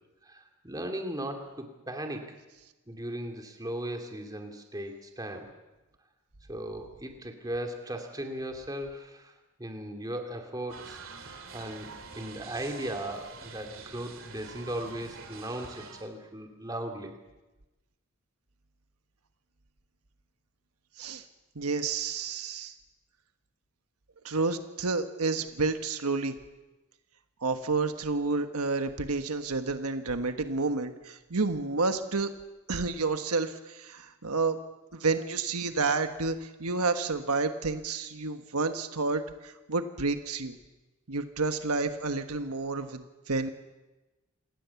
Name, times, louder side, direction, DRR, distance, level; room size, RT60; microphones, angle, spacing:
voice 1, 0.2-2.3 2.9-5.5 6.5-9.3 9.6-11.0 11.5-17.2, right 1 dB, 15° right, 4 dB, 2.6 m, -37 dB
sound 1, 10.7-16.1, right 4 dB, 60° right, 2.8 m, -46 dB
voice 2, 21.5-22.7 24.2-26.3 27.4-32.3 32.7-34.6 34.9-40.6 41.1-43.5, right 3 dB, 90° right, 8 dB, 1.4 m, -30 dB
27.5 x 19.0 x 7.1 m, 1.1 s
head